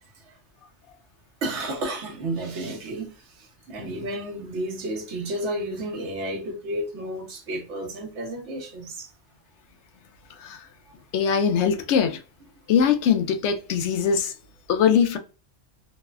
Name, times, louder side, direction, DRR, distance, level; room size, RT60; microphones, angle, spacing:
voice 1, 1.4-9.1, right 1 dB, 75° right, 1.1 m, -32 dB
voice 2, 11.1-12.2 12.7-14.3 14.7-15.2, left 7 dB, 80° left, 0.9 m, -21 dB
3.1 x 2.0 x 2.3 m
omnidirectional pair, 1.2 m